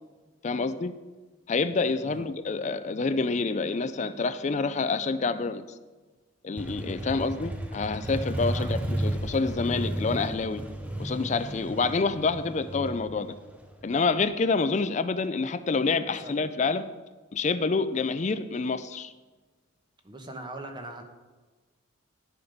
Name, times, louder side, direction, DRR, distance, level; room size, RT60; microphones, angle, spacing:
voice 1, 0.4-0.9 1.5-5.6 6.4-10.6 11.0-13.3 13.8-16.8 17.3-19.1, left 4 dB, 35° left, 12 dB, 0.4 m, -27 dB
Motorcycle, 6.6-14.2, right 1 dB, 5° right, 0.8 m, -33 dB
voice 2, 20.0-21.0, right 1 dB, 20° right, 4 dB, 1.1 m, -41 dB
11.5 x 7.0 x 5.1 m, 1.3 s
head